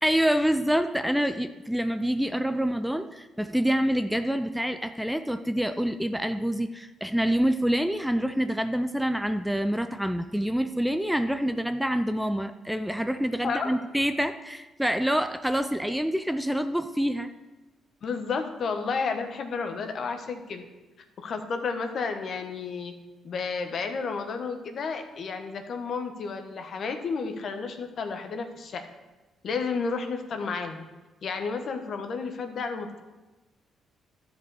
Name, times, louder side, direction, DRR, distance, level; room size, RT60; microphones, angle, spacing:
voice 1, 0.0-17.3, equal, ahead, 9 dB, 0.4 m, -26 dB
voice 2, 13.4-13.7 18.0-20.6 21.2-22.9 23.2-28.8 29.4-30.8 31.2-33.0, left 5 dB, 55° left, 6 dB, 1.1 m, -31 dB
12.5 x 5.2 x 4.8 m, 1.1 s
cardioid pair, 90°, 0 cm